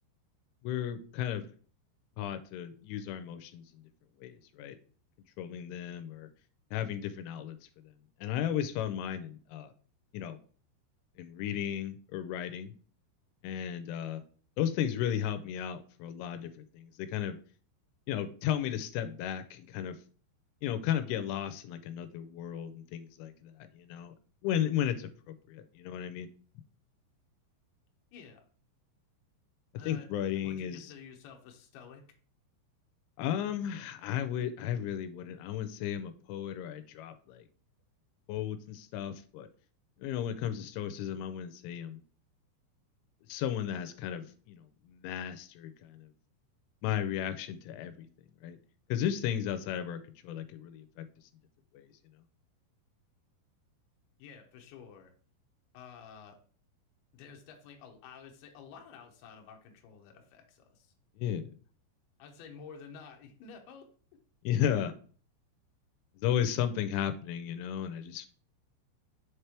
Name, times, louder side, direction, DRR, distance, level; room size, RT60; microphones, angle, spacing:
voice 1, 0.6-1.5 2.2-3.6 4.2-4.8 5.4-6.3 6.7-7.6 8.2-9.7 10.1-10.4 11.2-12.7 13.4-14.2 14.6-17.4 18.1-20.0 20.6-24.1 24.4-26.3 29.9-30.9 33.2-37.5 38.3-39.5 40.0-42.0 43.3-46.1 46.8-48.1 48.4-48.6 48.9-51.0 51.7-51.9 61.2-61.5 64.4-64.9 66.2-68.3, left 10 dB, 90° left, 10 dB, 3.0 m, -34 dB
voice 2, 29.8-30.1 30.4-32.0 54.2-55.1 55.7-56.4 57.1-60.9 62.2-63.9, left 6 dB, 70° left, 3 dB, 2.5 m, -51 dB
7.1 x 3.3 x 4.4 m, 0.43 s
omnidirectional pair, 5.4 m